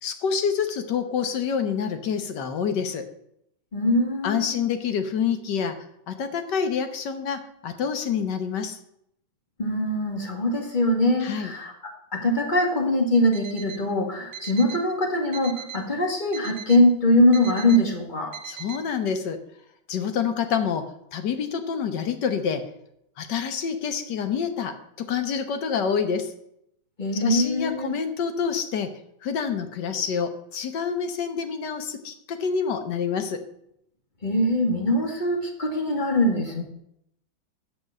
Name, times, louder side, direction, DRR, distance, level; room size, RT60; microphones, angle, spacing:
voice 1, 0.0-3.1 4.2-5.8 6.1-8.8 11.2-11.5 18.4-19.4 19.9-20.8 21.1-22.6 23.2-26.3 27.1-28.9 29.2-33.4, left 6 dB, 65° left, 8 dB, 1.6 m, -27 dB
voice 2, 3.7-4.5 9.6-11.7 12.1-18.3 27.0-27.9 34.2-36.6, left 1 dB, 25° left, 2 dB, 1.8 m, -22 dB
Alarm, 13.1-13.8 14.3-14.9 15.3-15.9 16.3-16.9 17.3-17.8 18.3-18.8, right 8 dB, 50° right, 1.4 m, -39 dB
9.0 x 6.1 x 7.4 m, 0.75 s
omnidirectional pair, 2.1 m